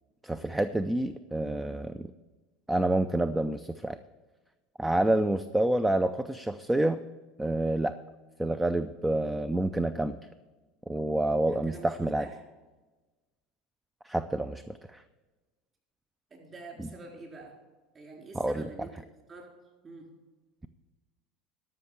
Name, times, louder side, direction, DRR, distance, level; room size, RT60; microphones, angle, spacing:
voice 1, 0.2-2.1 2.7-4.0 4.8-7.0 7.4-7.9 8.4-10.2 10.9-12.3 14.0-15.0 18.3-18.7, right 1 dB, 10° right, 12 dB, 0.4 m, -28 dB
voice 2, 11.5-12.4 16.3-17.6 17.9-18.9 19.3-19.5 19.8-20.1, right 3 dB, 30° right, 0 dB, 3.9 m, -47 dB
13.0 x 6.0 x 7.3 m, 1.2 s
supercardioid pair, 120°, 0 cm